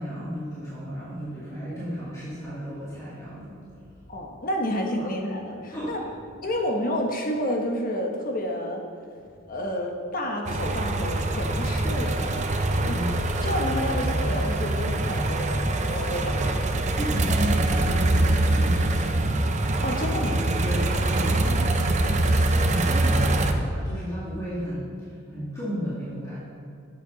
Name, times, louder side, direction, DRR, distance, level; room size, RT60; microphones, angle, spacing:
voice 1, 0.0-3.6 5.0-5.1 5.7-6.0 12.9-13.2 16.9-19.3 20.6-26.4, equal, 15° left, -11 dB, 2.3 m, -33 dB
voice 2, 4.1-6.0 6.4-8.8 9.5-13.0 13.4-16.5 19.8-20.4, equal, 45° left, 2 dB, 1.2 m, -30 dB
sound 1, 10.5-23.5, right 2 dB, 35° right, 0.6 m, -24 dB
11.5 x 8.4 x 4.0 m, 2.4 s
head